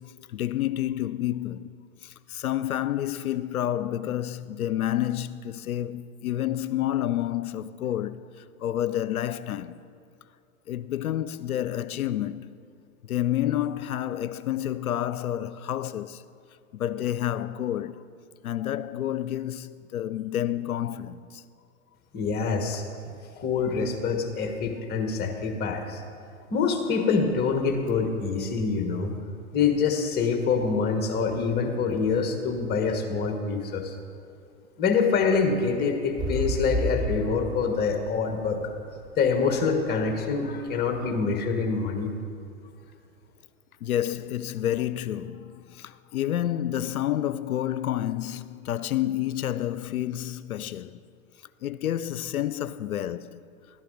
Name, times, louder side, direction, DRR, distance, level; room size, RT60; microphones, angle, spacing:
voice 1, 0.0-1.8 2.0-9.8 10.7-12.5 13.0-16.2 16.7-18.1 18.4-21.4 43.8-51.0 51.6-53.4, left 12 dB, 85° left, 0.5 m, -29 dB
voice 2, 22.1-22.8 23.4-26.0 26.5-29.1 29.5-33.9 34.8-38.6 39.2-42.1, left 5 dB, 25° left, 1.2 m, -25 dB
sound 1, 36.2-40.1 40.6-40.7, equal, 10° right, 1.0 m, -31 dB
12.0 x 10.5 x 3.9 m
hypercardioid pair, 110°, 42 cm